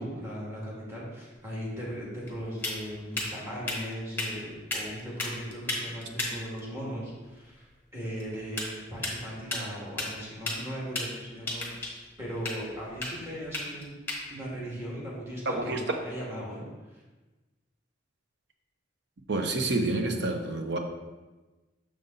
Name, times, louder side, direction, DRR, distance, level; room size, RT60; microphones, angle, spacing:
voice 1, 0.0-13.9 14.3-17.0, equal, 15° right, -6 dB, 2.2 m, -38 dB
sound 1, 1.3-16.1, left 2 dB, 10° left, 1.3 m, -38 dB
voice 2, 15.5-15.8 19.3-20.8, right 2 dB, 60° right, 4 dB, 0.7 m, -28 dB
6.6 x 5.3 x 4.0 m, 1.2 s
head